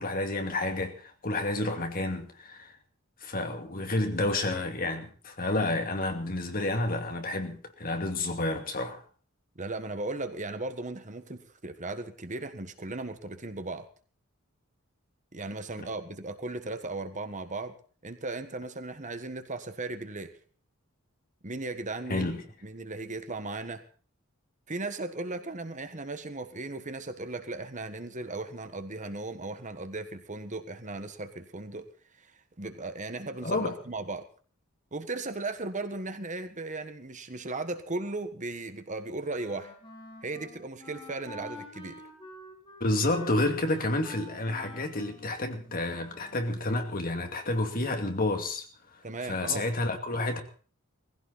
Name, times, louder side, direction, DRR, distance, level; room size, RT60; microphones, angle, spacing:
voice 1, 0.0-2.8 3.2-9.0 22.1-22.4 33.4-33.7 42.8-48.7 48.9-49.0 49.3-50.4, left 2 dB, 40° left, 2.5 m, -30 dB
voice 2, 9.5-13.9 15.3-17.8 18.0-20.3 21.4-22.3 22.6-23.8 24.7-34.2 34.9-39.7 40.2-42.0 49.0-49.7, right 2 dB, 35° right, 1.5 m, -37 dB
Wind instrument woodwind instrument, 39.3-46.4, left 1 dB, 25° left, 5.2 m, -48 dB
19.5 x 16.0 x 4.0 m
head